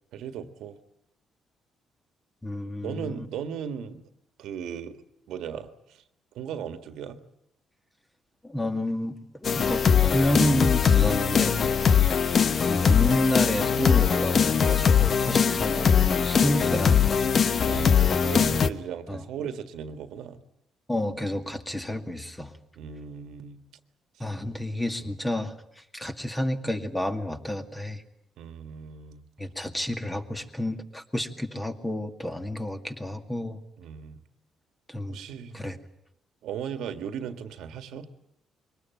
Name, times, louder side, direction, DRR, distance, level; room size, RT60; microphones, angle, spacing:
voice 1, 0.1-0.8 2.8-4.0 4.4-5.0 5.3-6.0 6.3-7.2 11.8-12.5 15.4-15.8 17.6-20.4 22.7-23.6 24.3-24.6 25.0-25.1 28.4-29.3 33.8-34.2 35.1-35.6 36.4-38.1, right 7 dB, 85° right, 9 dB, 1.7 m, -37 dB
voice 2, 2.4-3.3 8.4-11.6 12.7-17.4 18.2-18.7 19.1-19.2 20.9-22.5 24.2-25.5 25.9-28.0 29.4-33.6 34.9-35.2 35.5-35.8, left 1 dB, 10° left, 6 dB, 2.2 m, -30 dB
sound 1, 9.4-18.7, left 7 dB, 50° left, 1.0 m, -21 dB
23.0 x 19.5 x 9.1 m, 0.80 s
cardioid pair, 90°, 0 cm